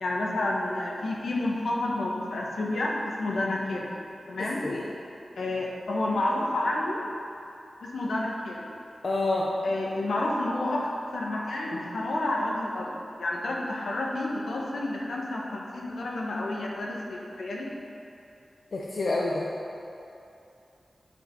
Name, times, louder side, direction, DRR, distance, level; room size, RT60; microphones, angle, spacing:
voice 1, 0.0-3.9 4.3-4.7 5.4-7.0 7.8-8.7 9.6-12.9 13.2-17.7, left 2 dB, 85° left, -2 dB, 1.3 m, -30 dB
voice 2, 9.0-9.5 18.7-19.5, left 2 dB, 65° left, -3 dB, 0.8 m, -27 dB
8.1 x 5.8 x 5.8 m, 2.7 s
cardioid pair, 45°, 0 cm